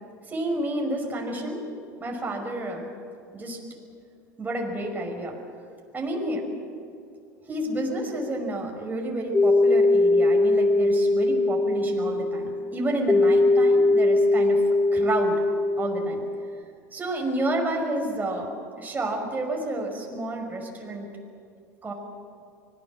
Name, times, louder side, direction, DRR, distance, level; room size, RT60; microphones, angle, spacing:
voice 1, 0.3-1.6 2.0-2.9 3.3-3.6 4.4-5.4 5.9-6.4 7.5-14.6 14.9-15.4 15.8-16.2 16.9-18.5 18.8-21.1 21.8-21.9, right 1 dB, 20° right, 0 dB, 5.8 m, -30 dB
sound 1, 9.3-16.6, left 2 dB, 15° left, 1.0 m, -21 dB
25.0 x 20.5 x 7.5 m, 2.4 s
hypercardioid pair, 90°, 9 cm